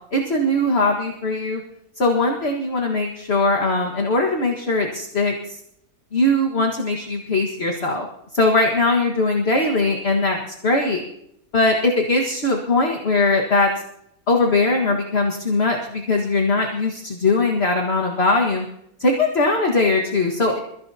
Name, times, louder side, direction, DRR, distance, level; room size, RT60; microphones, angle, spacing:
voice 1, 0.1-1.6 2.0-5.6 6.1-8.1 8.3-11.0 11.5-13.7 14.3-18.7 19.0-20.6, left 2 dB, 45° left, 1 dB, 1.9 m, -20 dB
28.5 x 16.0 x 2.8 m, 0.78 s
omnidirectional pair, 1.6 m